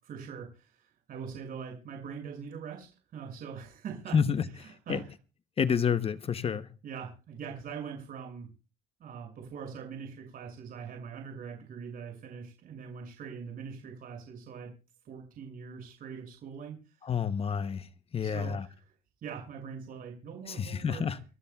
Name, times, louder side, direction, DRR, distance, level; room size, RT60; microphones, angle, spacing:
voice 1, 0.0-4.2 4.6-5.0 6.8-8.5 9.0-14.7 15.0-17.0 18.2-18.8 19.2-21.1, right 6 dB, 60° right, 6.4 m, -42 dB
voice 2, 4.1-5.0 5.6-6.7 17.0-18.7 20.5-21.2, left 7 dB, 35° left, 0.8 m, -29 dB
30.0 x 13.0 x 2.3 m
cardioid pair, 110°, 17 cm